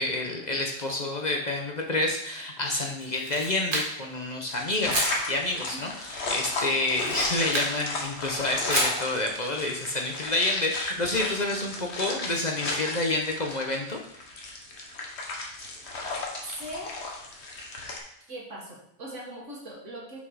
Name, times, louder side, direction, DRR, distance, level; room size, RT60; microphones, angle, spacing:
voice 1, 0.0-14.0, left 2 dB, 40° left, 2 dB, 0.9 m, -29 dB
Camera, 3.0-4.2 4.9-5.2 6.9-7.7 8.7-9.0, right 1 dB, 45° right, 1.6 m, -30 dB
sound 1, 4.5-18.0, left 2 dB, 60° left, 1.4 m, -34 dB
voice 2, 11.5-11.9 16.4-17.0 18.3-20.2, right 1 dB, 75° right, -2 dB, 2.2 m, -40 dB
6.0 x 5.9 x 4.7 m, 0.77 s
omnidirectional pair, 1.3 m